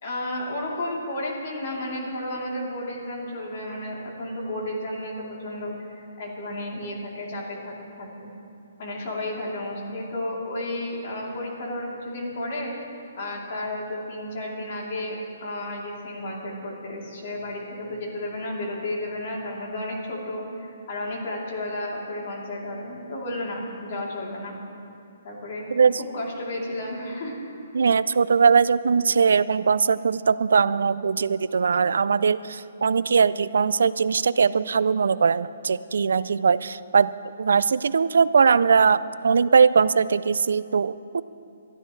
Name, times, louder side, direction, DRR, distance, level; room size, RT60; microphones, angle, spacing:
voice 1, 0.0-8.3 8.8-24.5 25.2-27.5, left 1 dB, 50° left, -3 dB, 3.3 m, -32 dB
voice 2, 27.7-37.1 37.4-41.2, right 5 dB, 80° right, 16 dB, 0.4 m, -20 dB
23.0 x 12.5 x 3.3 m, 2.7 s
hypercardioid pair, 160°, 0 cm